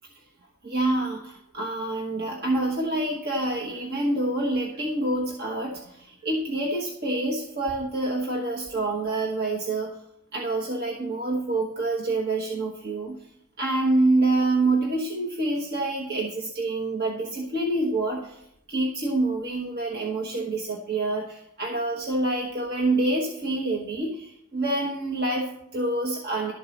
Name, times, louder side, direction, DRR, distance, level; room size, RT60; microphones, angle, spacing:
voice 1, 0.6-10.0 10.3-13.2 13.6-18.4 18.7-26.5, right 2 dB, 45° right, -1 dB, 1.2 m, -27 dB
12.0 x 4.6 x 7.0 m, 0.76 s
head